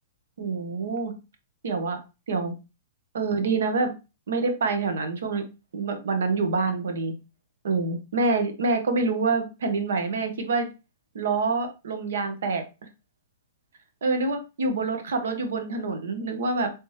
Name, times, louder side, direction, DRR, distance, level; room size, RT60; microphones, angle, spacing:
voice 1, 0.4-1.1 1.6-2.0 2.3-2.5 3.1-3.9 4.3-5.4 5.7-7.1 7.6-10.7 11.1-12.6 14.0-16.7, right 3 dB, 80° right, 6 dB, 0.9 m, -26 dB
3.4 x 3.1 x 3.1 m, 0.29 s
hypercardioid pair, 145°, 0 cm